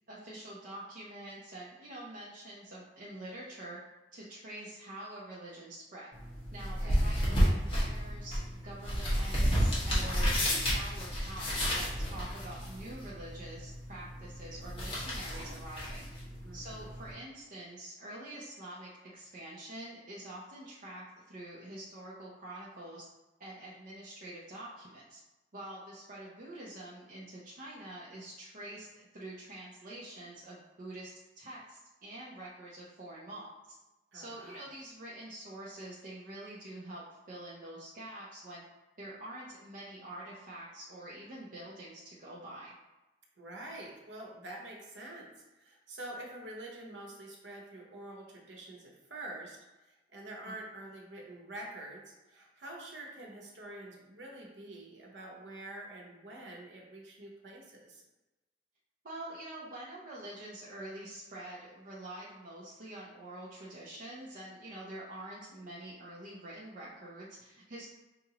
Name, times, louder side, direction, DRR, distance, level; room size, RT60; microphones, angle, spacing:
voice 1, 0.1-3.8 4.1-6.1 6.5-16.0 16.5-23.1 23.4-25.2 25.5-33.8 34.1-38.6 39.0-42.7 50.4-50.5 59.0-67.9, right 1 dB, 50° right, -6 dB, 0.7 m, -46 dB
sound 1, 6.1-17.1, equal, 30° left, 1.3 m, -32 dB
voice 2, 6.6-7.0 16.4-16.9 34.1-34.6 43.4-49.6 49.8-58.0, right 1 dB, 80° right, 0 dB, 1.0 m, -46 dB
5.7 x 2.6 x 2.9 m, 1.1 s
head